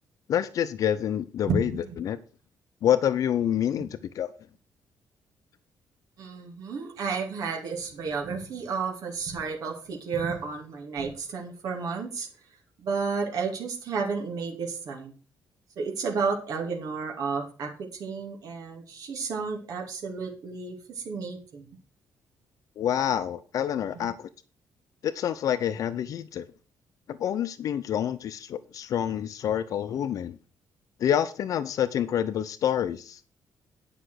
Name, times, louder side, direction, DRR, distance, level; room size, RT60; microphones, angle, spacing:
voice 1, 0.3-1.7 2.0-2.2 2.8-3.9 4.1-4.3 22.8-24.3 25.0-26.4 27.1-30.4 31.0-33.2, left 10 dB, 60° left, 12 dB, 0.6 m, -27 dB
voice 2, 1.4-1.9 3.8-3.9 6.2-12.3 12.8-15.1 15.8-17.7 18.0-21.7, right 5 dB, 65° right, 0 dB, 2.7 m, -32 dB
10.0 x 5.9 x 6.4 m, 0.37 s
cardioid pair, 150°, 7 cm